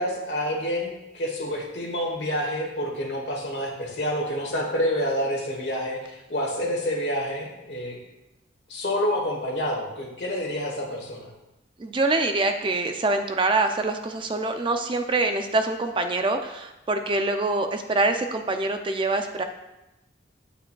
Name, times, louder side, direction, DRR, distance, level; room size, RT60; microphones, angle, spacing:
voice 1, 0.0-8.0 8.7-11.3, equal, 60° left, -1 dB, 1.8 m, -28 dB
voice 2, 11.8-19.4, right 2 dB, 25° right, 6 dB, 0.4 m, -25 dB
9.2 x 8.3 x 2.3 m, 0.95 s
head